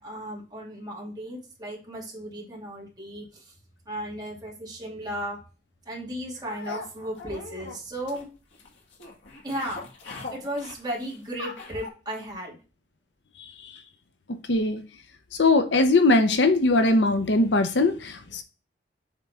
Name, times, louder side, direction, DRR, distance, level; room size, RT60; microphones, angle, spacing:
voice 1, 0.0-3.5 3.9-5.4 5.8-8.3 9.4-9.9 10.3-12.6, right 1 dB, 25° right, -3 dB, 2.5 m, -35 dB
sound 1, 6.5-11.9, left 4 dB, 90° left, 1.8 m, -41 dB
voice 2, 13.4-13.8 14.3-14.8 15.4-18.4, left 2 dB, 70° left, 8 dB, 0.8 m, -21 dB
7.4 x 3.7 x 4.2 m, 0.33 s
head